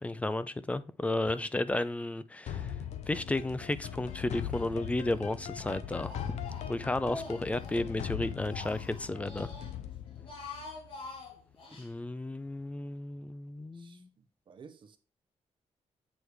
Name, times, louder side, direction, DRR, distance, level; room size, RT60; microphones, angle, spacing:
voice 1, 0.0-2.7 3.1-6.1 6.7-9.5 11.8-14.1, left 2 dB, 10° left, 0.3 m, -33 dB
sound 1, 2.5-11.3, left 9 dB, 85° left, 0.7 m, -40 dB
Speech, 4.0-4.8 5.1-7.9 8.2-9.7 10.1-11.9, left 3 dB, 50° left, 2.4 m, -46 dB
voice 2, 14.5-15.0, right 5 dB, 45° right, 0.9 m, -52 dB
8.1 x 3.3 x 4.6 m
wide cardioid pair, 145°, 11 cm